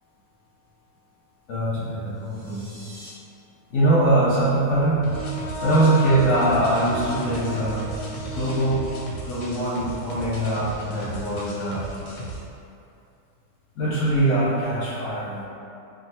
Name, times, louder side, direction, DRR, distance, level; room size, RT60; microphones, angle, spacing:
voice 1, 1.5-2.7 3.7-5.1 5.6-7.9 8.3-8.8 9.2-12.1 13.8-15.4, right 1 dB, 60° left, -9 dB, 0.8 m, -22 dB
sound 1, 2.0-3.1, right 1 dB, 55° right, 1.3 m, -47 dB
sound 2, 5.0-12.4, right 1 dB, 85° left, 1.2 m, -36 dB
Wind instrument woodwind instrument, 5.1-9.1, left 1 dB, 80° right, 1.4 m, -33 dB
3.9 x 2.1 x 2.8 m, 2.6 s
omnidirectional pair, 1.8 m